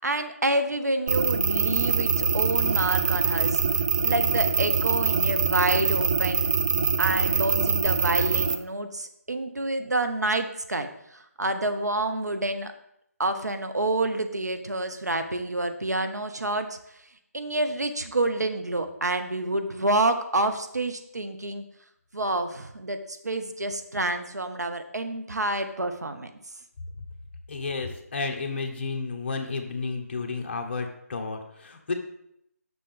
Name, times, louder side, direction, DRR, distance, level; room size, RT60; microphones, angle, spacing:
voice 1, 0.0-3.6 4.0-6.5 7.0-12.7 13.2-16.8 17.3-21.6 22.1-26.3, right 2 dB, 90° right, 8 dB, 0.9 m, -28 dB
sound 1, 1.1-8.6, right 5 dB, 30° right, 0.4 m, -24 dB
voice 2, 27.5-31.9, left 4 dB, 40° left, 4 dB, 1.0 m, -32 dB
6.9 x 6.1 x 3.7 m, 0.75 s
figure-of-eight pair, 160°, 9 cm